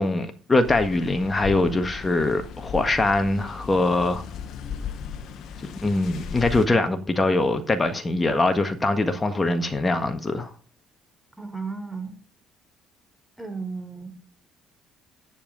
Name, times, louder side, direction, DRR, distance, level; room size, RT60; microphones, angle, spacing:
voice 1, 0.0-4.2 5.8-10.5, left 2 dB, 25° left, 1.6 m, -23 dB
sound 1, 0.6-6.7, left 7 dB, 65° left, 1.2 m, -36 dB
voice 2, 11.4-12.2 13.4-14.1, right 4 dB, 10° right, 3.8 m, -34 dB
10.0 x 7.4 x 5.2 m
hypercardioid pair, 55°, 0 cm